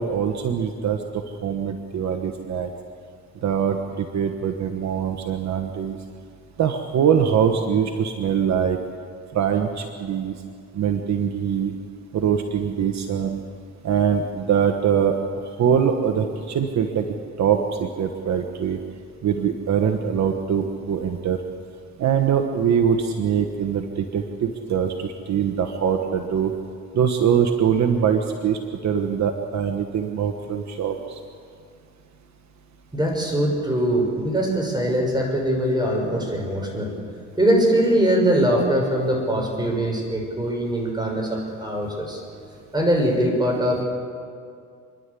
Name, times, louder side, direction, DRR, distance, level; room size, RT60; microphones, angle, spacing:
voice 1, 0.0-2.7 3.4-6.0 6.6-8.8 9.3-10.3 10.7-11.7 12.1-13.4 13.8-15.2 15.6-17.1 17.4-18.8 19.2-21.4 22.0-26.5 26.9-31.2, right 7 dB, 65° right, 5 dB, 1.3 m, -23 dB
voice 2, 32.9-36.9 37.4-42.2 42.7-43.8, right 1 dB, 15° right, 0 dB, 6.4 m, -22 dB
28.0 x 11.5 x 8.4 m, 2.2 s
cardioid pair, 90°, 30 cm